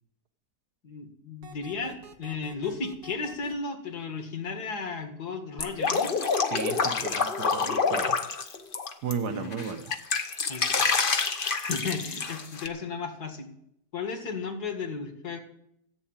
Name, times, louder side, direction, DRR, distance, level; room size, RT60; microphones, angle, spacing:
voice 1, 0.8-6.1 9.3-9.5 10.5-11.0 11.7-13.5 13.9-15.4, left 4 dB, 60° left, 5 dB, 2.5 m, -34 dB
sound 1, 1.4-3.5, right 5 dB, 90° right, 2.2 m, -48 dB
Drip, 5.6-9.1 9.5-12.7, left 5 dB, 35° left, 0.9 m, -27 dB
voice 2, 6.5-8.2 9.0-9.8, right 6 dB, 65° right, 8 dB, 1.6 m, -34 dB
14.5 x 8.6 x 8.9 m, 0.74 s
omnidirectional pair, 1.9 m